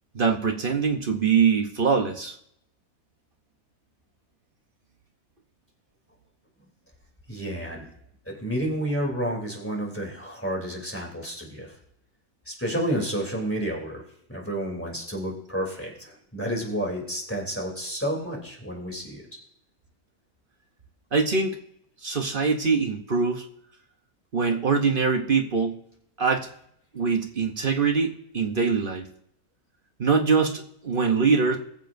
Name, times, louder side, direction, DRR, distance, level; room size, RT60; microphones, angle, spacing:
voice 1, 0.1-2.4 21.1-21.6 22.0-23.4 24.3-25.8 26.2-26.5 26.9-29.1 30.0-31.6, right 5 dB, 40° right, 4 dB, 0.9 m, -23 dB
voice 2, 7.3-7.8 8.3-11.7 12.5-14.0 14.3-19.2, equal, 10° left, -1 dB, 3.0 m, -30 dB
21.0 x 7.3 x 2.6 m, 0.72 s
omnidirectional pair, 1.6 m